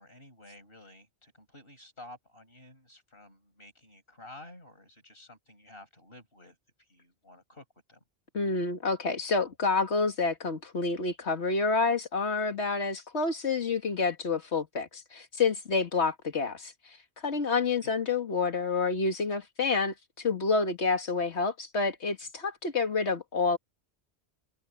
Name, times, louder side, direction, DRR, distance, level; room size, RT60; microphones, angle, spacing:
voice 1, 0.0-6.6 6.9-8.0 17.8-17.9, left 1 dB, 55° left, 6.3 m, -52 dB
voice 2, 8.3-16.7 17.2-23.6, left 4 dB, 80° left, 2.2 m, -28 dB
omnidirectional pair, 1.1 m